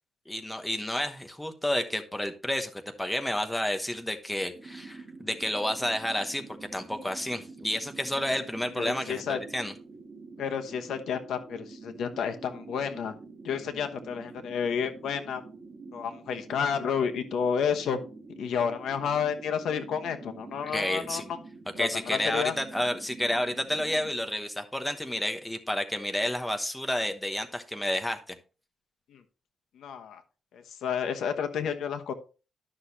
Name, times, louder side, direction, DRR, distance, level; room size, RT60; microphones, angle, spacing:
voice 1, 0.3-6.4 6.7-9.7 20.7-21.3 21.8-28.2, left 1 dB, 5° left, 6 dB, 1.0 m, -30 dB
sound 1, 4.5-24.1, right 4 dB, 35° right, 1.8 m, -47 dB
voice 2, 8.8-9.4 10.4-13.1 13.4-15.4 15.9-18.0 18.4-21.4 21.8-22.5 29.1-29.2 29.8-30.2 30.5-32.1, left 7 dB, 80° left, 7 dB, 1.1 m, -30 dB
12.0 x 6.3 x 2.8 m, 0.34 s
cardioid pair, 140°, 0 cm